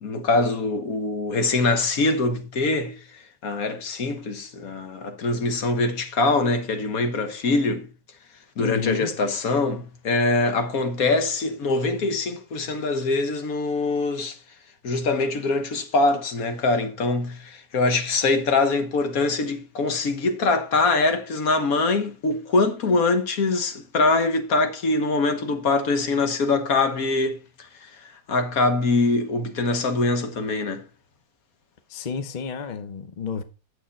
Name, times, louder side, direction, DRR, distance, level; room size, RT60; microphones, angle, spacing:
voice 1, 0.0-7.9 8.6-14.4 14.8-27.7 28.0-30.8, left 3 dB, 60° left, 1.6 m, -23 dB
voice 2, 8.6-9.1 31.9-33.4, left 6 dB, 40° left, 0.7 m, -31 dB
9.0 x 7.1 x 4.2 m
omnidirectional pair, 1.8 m